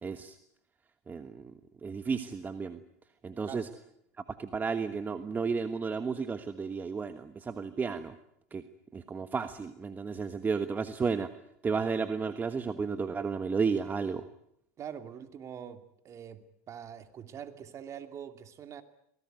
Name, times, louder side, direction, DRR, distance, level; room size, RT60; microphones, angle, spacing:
voice 1, 0.0-0.3 1.1-1.5 1.8-2.8 3.2-3.7 4.4-8.1 8.5-8.6 8.9-11.3 11.6-14.2, right 5 dB, 20° right, 10 dB, 1.4 m, -32 dB
voice 2, 14.8-16.4 16.7-18.8, right 8 dB, 40° right, 8 dB, 2.6 m, -44 dB
25.5 x 18.5 x 9.3 m, 0.76 s
hypercardioid pair, 100°, 8 cm